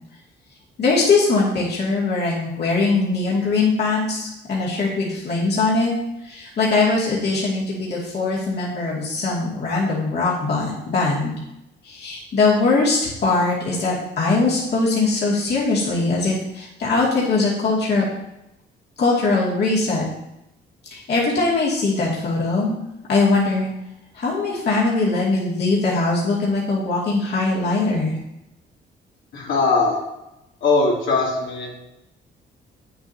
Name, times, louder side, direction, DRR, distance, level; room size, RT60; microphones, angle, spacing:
voice 1, 0.8-5.9 6.2-11.3 11.8-18.0 19.0-20.0 20.9-22.7 23.1-23.7 24.1-28.2, left 3 dB, 55° left, -6 dB, 2.4 m, -21 dB
voice 2, 29.3-30.0 30.6-31.7, left 3 dB, 75° left, -5 dB, 2.7 m, -20 dB
8.8 x 7.9 x 2.8 m, 0.89 s
cardioid pair, 90°, 20 cm